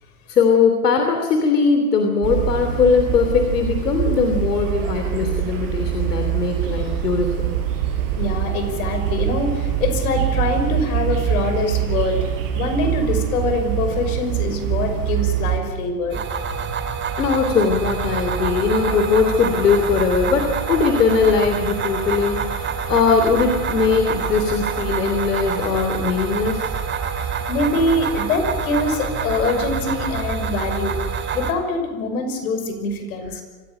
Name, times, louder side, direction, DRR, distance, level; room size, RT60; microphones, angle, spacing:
voice 1, 0.3-7.6 17.2-26.7, left 5 dB, 80° left, 5 dB, 3.1 m, -20 dB
sound 1, 2.2-15.6, right 10 dB, 45° right, 7.5 m, -24 dB
voice 2, 8.2-12.2 12.5-16.2 27.1-30.9 31.3-33.4, left 2 dB, 65° left, 6 dB, 6.0 m, -24 dB
sound 2, 16.1-31.5, right 6 dB, 25° right, 3.0 m, -26 dB
25.5 x 16.0 x 9.0 m, 1.4 s
hypercardioid pair, 110°, 46 cm